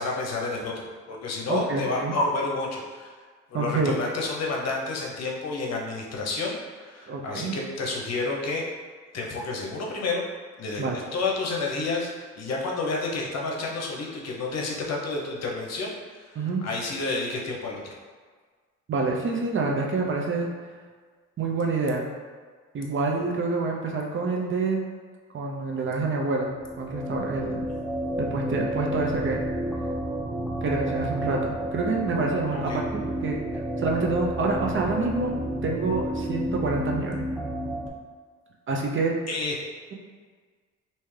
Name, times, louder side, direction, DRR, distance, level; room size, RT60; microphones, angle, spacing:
voice 1, 0.0-3.1 3.5-8.6 9.1-10.2 10.6-10.8 11.1-15.9 16.2-17.8 32.5-32.8 39.3-39.5, left 3 dB, 60° left, -1 dB, 0.8 m, -30 dB
voice 2, 1.5-2.1 3.5-4.0 7.1-7.6 10.8-11.0 16.4-16.6 18.9-20.5 21.4-22.1 22.7-24.8 25.3-26.5 26.8-27.7 28.2-29.4 30.6-32.8 33.2-33.4 33.8-35.4 35.6-37.2 38.7-39.1, right 3 dB, 40° right, 0 dB, 0.6 m, -27 dB
sound 1, 26.4-37.9, equal, ahead, 0.4 m, -31 dB
3.3 x 2.8 x 3.2 m, 1.5 s
cardioid pair, 90°, 30 cm